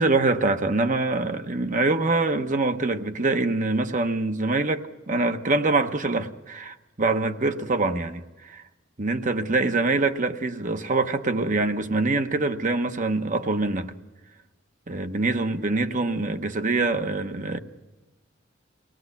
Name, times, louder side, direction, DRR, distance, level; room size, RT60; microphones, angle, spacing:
voice 1, 0.0-8.6 9.0-13.9 14.9-17.6, right 3 dB, 40° right, 1.0 m, -24 dB
23.5 x 18.5 x 8.2 m
head